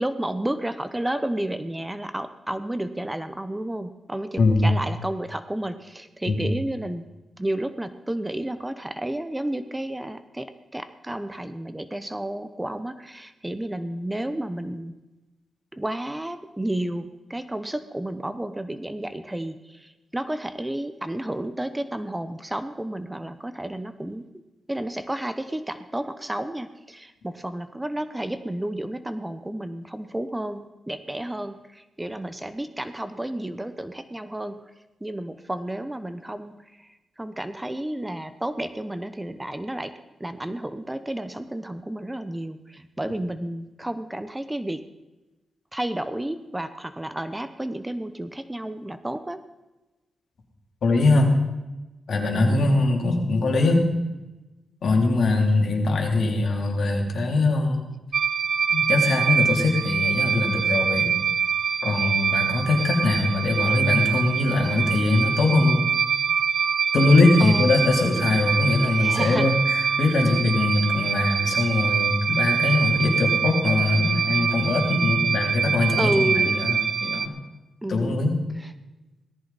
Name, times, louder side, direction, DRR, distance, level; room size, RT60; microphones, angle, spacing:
voice 1, 0.0-7.0 7.4-14.9 15.7-24.2 24.7-34.6 35.0-39.9 40.2-44.8 45.7-49.4 52.3-52.9 67.4-67.7 68.8-69.5 76.0-76.6 77.8-78.2 78.6-78.7, right 1 dB, 10° right, 10 dB, 0.9 m, -31 dB
voice 2, 50.8-51.3 52.1-53.9 54.8-57.8 58.7-61.1 61.8-65.8 66.9-77.3 77.9-78.3, left 2 dB, 70° left, 1 dB, 3.1 m, -22 dB
sound 1, 58.1-77.3, right 7 dB, 65° right, 0.7 m, -25 dB
18.0 x 14.0 x 4.1 m, 1.1 s
cardioid pair, 85°, 0 cm